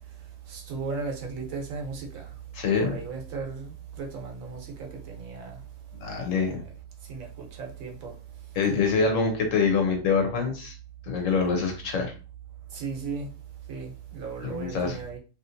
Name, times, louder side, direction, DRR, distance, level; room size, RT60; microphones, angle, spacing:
voice 1, 0.5-2.4 2.8-5.6 6.5-6.6 7.0-8.2 12.7-13.3 13.7-15.2, right 4 dB, 85° right, 1.3 m, -36 dB
voice 2, 2.5-3.0 6.0-6.6 8.5-10.7 11.0-12.1 14.4-15.0, left 5 dB, 70° left, 1.2 m, -25 dB
3.0 x 2.9 x 2.6 m
omnidirectional pair, 1.4 m